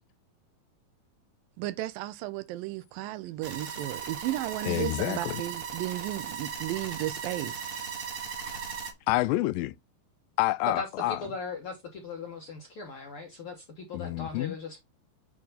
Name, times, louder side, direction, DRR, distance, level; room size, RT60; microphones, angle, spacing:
voice 1, 1.6-7.7, right 15 dB, 80° right, 2.3 m, -34 dB
sound 1, 3.4-8.9, right 7 dB, 55° right, 1.7 m, -37 dB
voice 2, 4.6-5.4 9.1-9.7 10.4-11.2 13.9-14.6, left 17 dB, 85° left, 2.3 m, -28 dB
voice 3, 10.7-14.8, left 4 dB, 70° left, 1.3 m, -39 dB
8.5 x 3.7 x 3.9 m
omnidirectional pair, 4.1 m